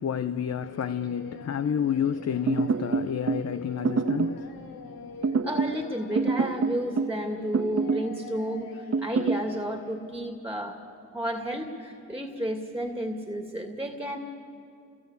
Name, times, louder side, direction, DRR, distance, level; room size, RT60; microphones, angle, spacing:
voice 1, 0.0-4.7 5.0-5.2, left 8 dB, 50° left, 0.8 m, -30 dB
Singing, 0.6-10.0, left 5 dB, 80° left, 2.3 m, -44 dB
sound 1, 2.5-3.5 3.8-4.4 5.2-5.8 6.2-7.2 7.5-8.1 8.9-9.4, right 4 dB, 45° right, 1.4 m, -26 dB
voice 2, 5.4-10.8 11.1-14.2, equal, 5° right, 2.4 m, -32 dB
29.0 x 20.0 x 8.2 m
cardioid pair, 60°, 34 cm